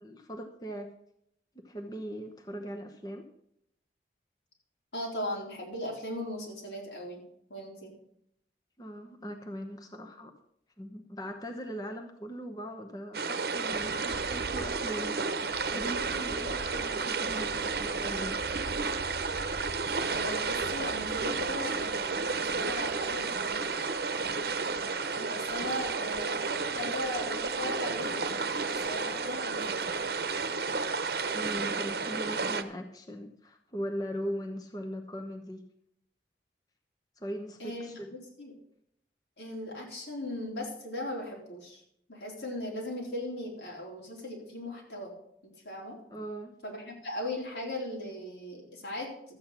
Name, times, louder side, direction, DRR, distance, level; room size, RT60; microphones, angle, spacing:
voice 1, 0.0-0.9 1.5-3.3 8.8-10.3 10.8-15.2 15.7-18.4 31.3-35.6 37.2-38.1 46.1-46.5, equal, 20° left, 4 dB, 1.0 m, -40 dB
voice 2, 4.9-7.2 7.5-7.9 17.2-17.5 20.1-23.7 25.2-30.1 37.6-38.5 39.4-41.8 42.1-45.1 45.6-46.0 46.6-49.4, left 1 dB, 85° left, -1 dB, 4.2 m, -38 dB
sound 1, 13.1-32.6, right 4 dB, 60° right, 0.9 m, -32 dB
13.0 x 8.6 x 5.8 m, 0.72 s
head